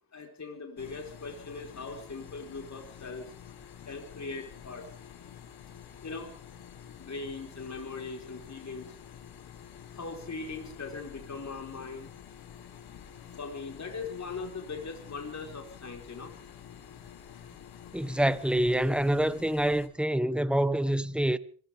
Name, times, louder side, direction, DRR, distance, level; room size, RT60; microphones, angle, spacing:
voice 1, 0.1-3.3 3.9-4.9 6.0-6.3 7.0-9.0 10.0-12.1 13.4-16.3, left 4 dB, 45° left, 4.3 m, -40 dB
sound 1, 0.8-19.9, left 8 dB, 85° left, 1.9 m, -49 dB
voice 2, 17.9-21.4, right 1 dB, 5° right, 1.2 m, -26 dB
25.5 x 15.0 x 3.6 m
supercardioid pair, 50°, 37 cm